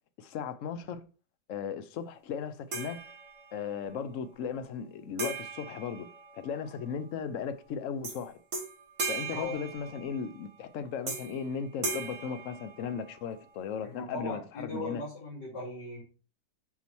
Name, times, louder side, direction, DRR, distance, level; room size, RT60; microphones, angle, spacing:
voice 1, 0.2-1.1 1.5-3.0 3.5-8.4 9.1-15.0, left 6 dB, 80° left, 0.7 m, -36 dB
sound 1, 2.7-3.7 5.2-6.8 8.0-8.2 8.5-10.3 11.1-11.5 11.8-13.3, right 4 dB, 40° right, 2.0 m, -38 dB
voice 2, 13.8-16.0, left 2 dB, 55° left, 4.2 m, -38 dB
6.1 x 5.7 x 4.5 m
omnidirectional pair, 2.1 m